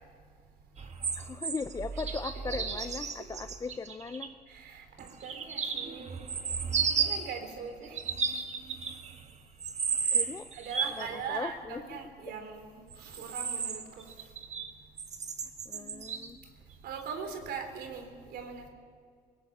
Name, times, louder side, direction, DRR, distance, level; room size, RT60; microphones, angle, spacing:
sound 1, 0.8-4.3 5.0-7.3 7.8-9.2 9.6-11.1 12.9-14.7 15.0-16.3 17.0-17.1, right 6 dB, 40° right, 1.6 m, -33 dB
voice 1, 1.2-4.3 10.1-10.5 11.0-12.0 15.7-16.4, left 4 dB, 20° left, 10 dB, 0.6 m, -38 dB
voice 2, 2.3-2.7 4.5-6.2 7.0-8.0 10.6-14.0 15.7-16.1 16.8-18.7, right 6 dB, 70° right, 7 dB, 3.5 m, -41 dB
20.5 x 18.5 x 7.9 m, 2.1 s
cardioid pair, 110°, 17 cm